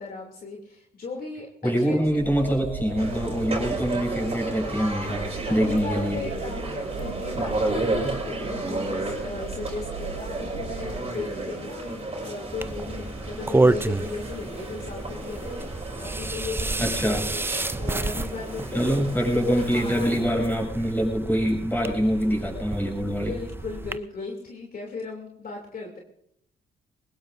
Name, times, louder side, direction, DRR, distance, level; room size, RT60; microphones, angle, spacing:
voice 1, 0.0-2.2 5.4-15.6 16.0-17.5 17.8-19.0 19.6-20.1 22.9-26.0, left 4 dB, 45° left, -1 dB, 2.9 m, -37 dB
voice 2, 1.6-6.2 16.8-17.3 18.7-23.4, equal, 10° left, 0 dB, 6.7 m, -25 dB
sound 1, 1.9-11.0, right 5 dB, 75° right, 4.6 m, -38 dB
sound 2, 2.9-20.0, right 2 dB, 30° right, 5.2 m, -33 dB
sound 3, 12.6-24.0, right 2 dB, 10° right, 0.5 m, -30 dB
22.0 x 20.0 x 2.6 m, 0.73 s
cardioid pair, 90°, 20 cm